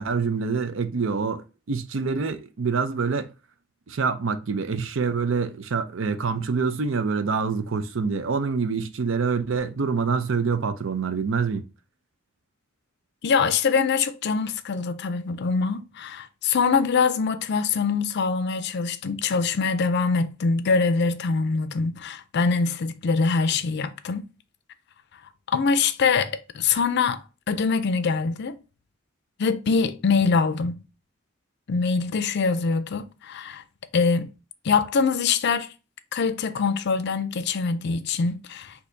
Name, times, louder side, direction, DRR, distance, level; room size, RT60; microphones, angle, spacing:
voice 1, 0.0-3.3 3.9-11.7, right 5 dB, 70° right, 0.6 m, -26 dB
voice 2, 13.2-24.3 25.5-27.2 27.5-28.6 29.4-30.8 31.7-33.6 33.9-34.3 34.6-35.7 36.1-38.7, left 5 dB, 55° left, 0.5 m, -24 dB
6.3 x 2.8 x 2.7 m
head